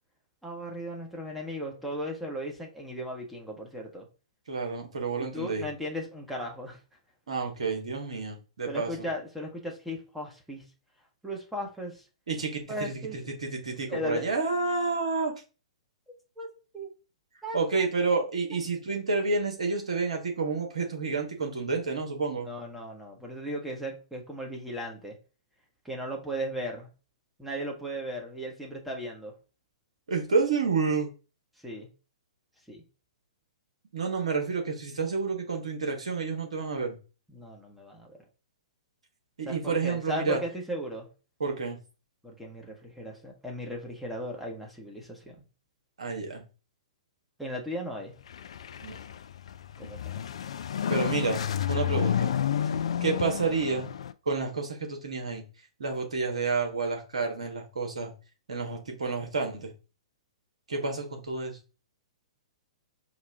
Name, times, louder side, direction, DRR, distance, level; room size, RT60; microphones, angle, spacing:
voice 1, 0.4-4.1 5.3-6.8 8.7-10.6 11.2-12.0 12.7-13.3 13.9-14.3 16.4-16.5 16.7-16.9 17.4-17.6 22.4-25.1 25.8-26.9 27.4-29.3 31.6-31.9 32.7-32.8 37.3-38.2 39.5-41.1 42.2-45.4 47.4-48.1 49.8-50.2, equal, ahead, -1 dB, 1.0 m, -36 dB
voice 2, 4.5-5.7 7.3-9.1 12.3-15.3 17.5-22.5 30.1-31.1 33.9-37.0 39.4-40.4 41.4-41.8 46.0-46.4 48.8-49.0 50.9-51.4 51.7-52.3 53.0-53.9 54.3-55.4 55.8-58.1 58.5-59.7 60.7-61.6, right 4 dB, 70° right, 3 dB, 1.2 m, -29 dB
sound 1, 48.2-54.1, left 9 dB, 60° left, 0.3 m, -31 dB
4.8 x 2.3 x 3.4 m, 0.33 s
figure-of-eight pair, 115°, 4 cm